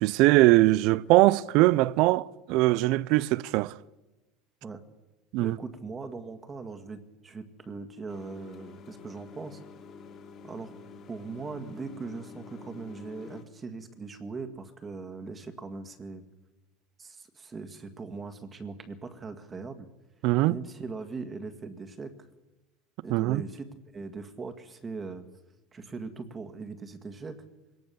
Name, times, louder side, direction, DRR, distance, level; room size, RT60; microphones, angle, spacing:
voice 1, 0.0-3.7 5.3-5.6 20.2-20.6 23.1-23.4, right 19 dB, 60° right, 0.6 m, -21 dB
voice 2, 5.4-9.6 10.4-10.7 11.1-16.2 17.0-19.9 20.5-22.3 23.0-23.7 23.9-25.2 25.7-27.4, right 4 dB, 20° right, 1.8 m, -40 dB
sound 1, 8.1-13.4, left 5 dB, 40° left, 3.0 m, -48 dB
23.0 x 18.5 x 7.1 m
supercardioid pair, 140°, 0 cm